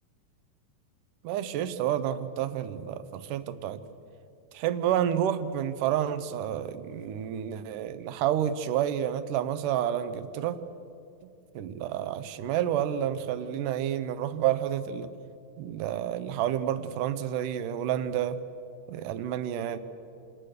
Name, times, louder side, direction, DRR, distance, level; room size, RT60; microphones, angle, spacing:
voice 1, 1.2-3.8 4.5-10.6 11.2-15.1 15.6-18.4 18.9-19.8, right 10 dB, 70° right, 2.4 m, -29 dB
29.0 x 28.5 x 6.7 m
omnidirectional pair, 4.2 m